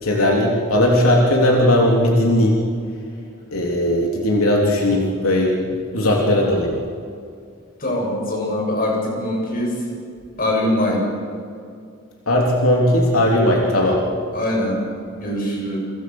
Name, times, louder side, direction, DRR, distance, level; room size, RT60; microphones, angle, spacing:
voice 1, 0.0-2.6 3.5-5.6 5.9-6.7 12.3-14.0, left 1 dB, 85° left, -1 dB, 3.5 m, -17 dB
voice 2, 7.8-9.7 10.4-11.0 14.3-14.8 15.1-15.8, left 1 dB, 40° left, -1 dB, 7.8 m, -22 dB
29.0 x 25.5 x 6.3 m, 2.3 s
head